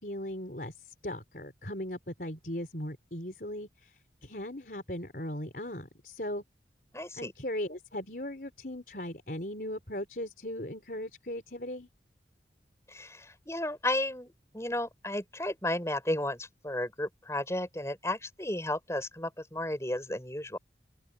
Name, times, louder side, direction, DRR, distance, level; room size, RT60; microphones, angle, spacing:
voice 1, 0.0-6.4 7.2-11.9, left 1 dB, 50° left, 4.6 m, -38 dB
voice 2, 6.9-7.3 12.9-20.6, left 1 dB, 15° left, 6.7 m, -33 dB
open air
head